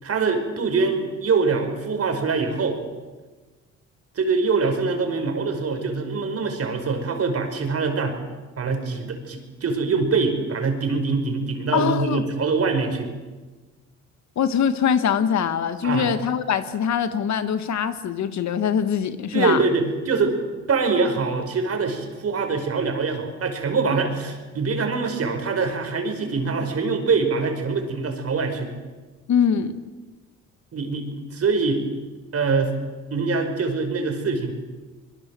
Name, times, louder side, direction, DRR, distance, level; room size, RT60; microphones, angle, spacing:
voice 1, 0.0-2.8 4.2-8.2 8.6-13.1 15.8-16.1 19.3-20.4 20.7-28.7 30.7-31.9 32.3-32.7 33.1-34.5, right 4 dB, 50° right, 5 dB, 5.3 m, -24 dB
voice 2, 11.7-12.2 14.3-19.6 29.3-29.7, left 7 dB, 65° left, 10 dB, 1.7 m, -23 dB
25.0 x 21.5 x 7.6 m, 1.3 s
cardioid pair, 90°, 30 cm